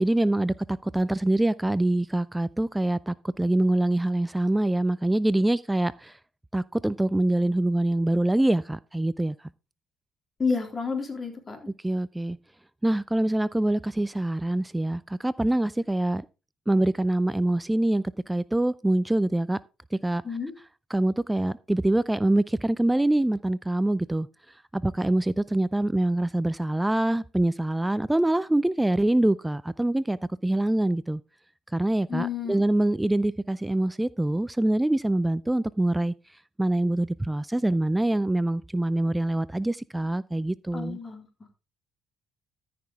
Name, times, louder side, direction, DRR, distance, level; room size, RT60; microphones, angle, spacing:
voice 1, 0.0-6.2 6.5-9.3 11.8-12.4 12.8-16.2 16.7-19.6 19.9-20.2 20.9-24.3 24.7-31.2 31.7-36.1 36.6-41.0, right 1 dB, 10° right, 0.4 m, -25 dB
voice 2, 10.4-11.7 20.2-20.5 32.1-32.6 40.7-41.3, left 5 dB, 30° left, 3.6 m, -30 dB
13.5 x 6.1 x 3.6 m
hypercardioid pair, 60°, 0 cm